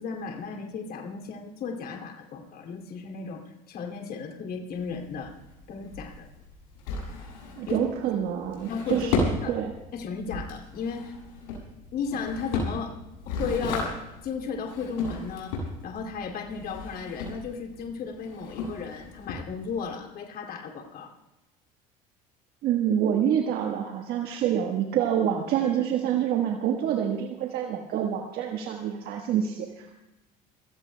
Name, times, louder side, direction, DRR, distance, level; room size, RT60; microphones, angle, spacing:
voice 1, 0.0-5.3 5.7-6.3 7.7-7.8 8.7-9.1 9.4-9.5 9.9-11.1 11.9-12.9 13.3-13.9 14.2-15.5 15.8-21.1, left 5 dB, 60° left, 2 dB, 2.6 m, -34 dB
Drawer open or close, 4.7-19.9, left 3 dB, 85° left, 7.4 m, -35 dB
voice 2, 7.6-9.7 22.6-30.0, right 9 dB, 65° right, 2 dB, 1.4 m, -27 dB
29.0 x 18.0 x 2.2 m, 0.97 s
supercardioid pair, 80°, 17 cm